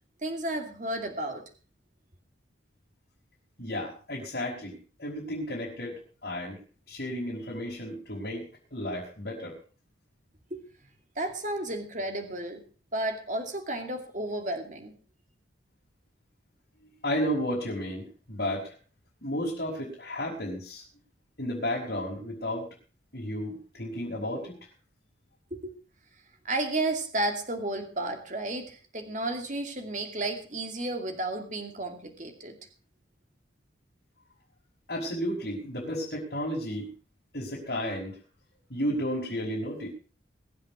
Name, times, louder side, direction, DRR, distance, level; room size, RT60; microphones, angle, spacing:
voice 1, 0.2-1.4 10.5-10.6 11.2-12.6 12.9-14.9 25.5-25.7 26.4-32.6, right 1 dB, 40° right, 5 dB, 2.5 m, -32 dB
voice 2, 3.6-6.6 6.9-8.4 8.7-9.6 17.0-18.8 19.2-20.8 21.4-22.7 23.1-24.6 34.9-36.9 37.3-38.2 38.7-39.9, equal, 50° left, -5 dB, 5.3 m, -33 dB
22.0 x 7.9 x 5.9 m, 0.38 s
head